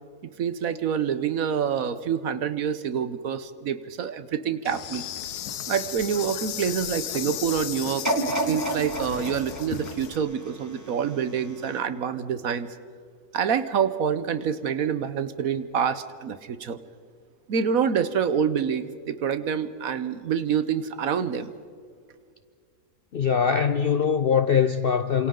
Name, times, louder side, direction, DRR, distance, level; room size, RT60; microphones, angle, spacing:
voice 1, 0.2-5.0 5.7-12.7 13.3-16.8 17.5-21.5, right 7 dB, 65° right, 1.3 m, -27 dB
Insect, 4.6-10.2, left 10 dB, 85° left, 1.3 m, -35 dB
sound 1, 8.0-11.1 11.7-11.8, right 1 dB, 10° right, 1.3 m, -30 dB
voice 2, 23.1-25.3, left 7 dB, 60° left, 0.6 m, -22 dB
28.5 x 27.0 x 3.8 m
omnidirectional pair, 1.7 m